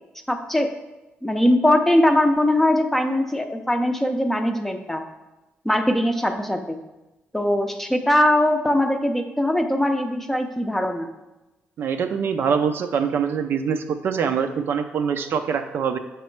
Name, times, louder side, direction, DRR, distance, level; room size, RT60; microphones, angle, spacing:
voice 1, 0.3-0.7 1.2-5.0 5.6-6.8 7.3-11.1, left 1 dB, 5° left, 5 dB, 0.6 m, -21 dB
voice 2, 11.8-16.0, right 6 dB, 60° right, 7 dB, 0.5 m, -24 dB
7.3 x 3.1 x 4.5 m, 1.0 s
cardioid pair, 105°, 4 cm